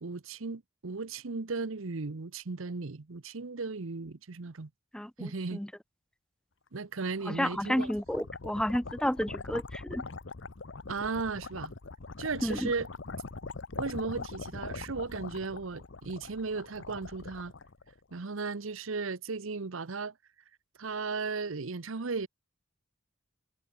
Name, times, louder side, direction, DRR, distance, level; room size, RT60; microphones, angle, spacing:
voice 1, 0.0-4.7 5.2-5.6 6.7-7.9 10.9-11.7 12.2-12.9 13.7-17.5 18.1-20.1 20.8-22.3, right 4 dB, 75° right, 0.9 m, -36 dB
voice 2, 4.9-5.7 7.3-10.0 12.4-12.7, equal, 5° left, 0.5 m, -31 dB
sound 1, 7.0-18.2, left 3 dB, 60° left, 0.9 m, -42 dB
head